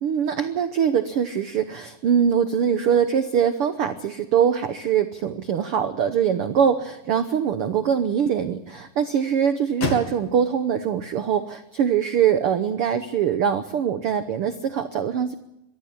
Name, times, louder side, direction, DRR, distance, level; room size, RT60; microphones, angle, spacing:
voice 1, 0.0-15.3, right 8 dB, 80° right, 9 dB, 1.3 m, -23 dB
sound 1, 6.3-12.4, left 4 dB, 55° left, 3.6 m, -38 dB
23.5 x 15.0 x 8.8 m, 0.87 s
omnidirectional pair, 3.9 m